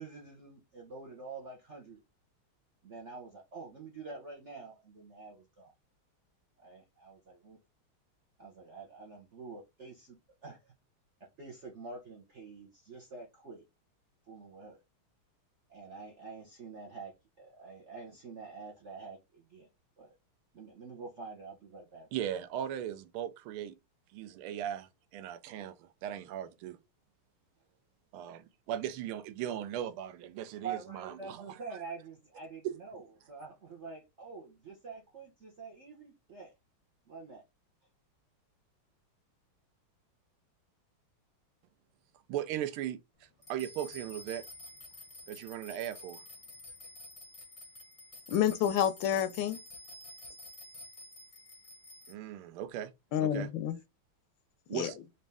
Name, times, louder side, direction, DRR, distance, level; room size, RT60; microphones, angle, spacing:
voice 1, 0.0-2.0 2.8-5.7 6.6-7.6 8.4-10.2 10.4-10.7 11.4-13.6 14.3-14.8 15.7-19.7 20.0-20.2 20.5-22.1 30.6-36.5 37.1-37.4, right 4 dB, 55° right, 0.8 m, -47 dB
voice 2, 22.1-23.7 24.1-26.8 28.1-31.6 32.6-32.8 42.3-43.0 43.5-44.4 45.3-46.2 52.1-52.9 53.2-53.5 54.7-55.0, right 11 dB, 85° right, 1.5 m, -38 dB
sound 1, 43.4-52.1, left 1 dB, 25° left, 0.8 m, -50 dB
voice 3, 48.3-49.6 53.1-53.8 54.7-54.9, left 10 dB, 75° left, 1.2 m, -29 dB
4.1 x 2.6 x 3.3 m
omnidirectional pair, 2.3 m